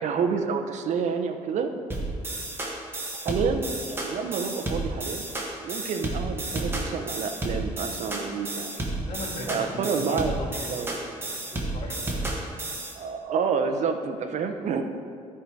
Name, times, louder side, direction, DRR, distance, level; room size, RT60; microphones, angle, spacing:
voice 1, 0.0-1.7 3.2-5.3 5.6-8.7 9.5-10.4 10.7-11.0 12.9-14.8, right 5 dB, 60° right, 6 dB, 0.8 m, -28 dB
sound 1, 1.9-12.9, right 2 dB, 15° right, 1.6 m, -32 dB
voice 2, 9.0-12.2, left 1 dB, 50° left, -1 dB, 1.7 m, -38 dB
13.0 x 4.8 x 4.7 m, 2.2 s
cardioid pair, 125°, 13 cm